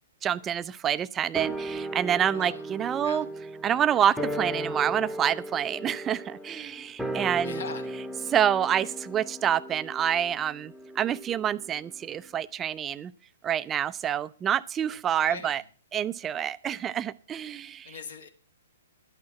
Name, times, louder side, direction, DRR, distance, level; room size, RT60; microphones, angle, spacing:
voice 1, 0.2-3.3 3.6-7.6 8.3-13.1 13.4-15.6 15.9-18.0, right 9 dB, 20° right, 16 dB, 0.5 m, -27 dB
sound 1, 1.3-12.0 12.2-12.3, right 1 dB, ahead, 1.0 m, -36 dB
voice 2, 7.4-7.9 15.2-15.6 17.8-18.3, left 5 dB, 65° left, 6 dB, 1.9 m, -40 dB
12.0 x 8.8 x 5.8 m, 0.37 s
figure-of-eight pair, 115°, 0 cm